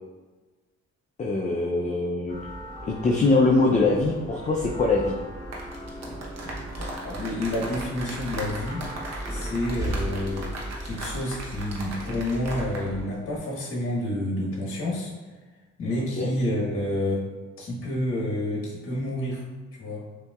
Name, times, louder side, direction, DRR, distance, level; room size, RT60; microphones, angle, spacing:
voice 1, 1.2-2.3 2.9-5.1 16.2-16.3, left 3 dB, 25° left, -1 dB, 0.5 m, -22 dB
sound 1, 2.3-13.1, right 1 dB, 10° right, 1.4 m, -37 dB
sound 2, 5.4-12.9 13.1-13.4, right 2 dB, 55° right, 1.0 m, -38 dB
voice 2, 6.8-8.9 9.3-10.4 10.8-15.1 15.8-17.2 17.6-19.4 19.8-20.0, left 1 dB, 45° left, -3 dB, 1.3 m, -29 dB
6.7 x 2.7 x 2.3 m, 1.3 s
cardioid pair, 90°, 30 cm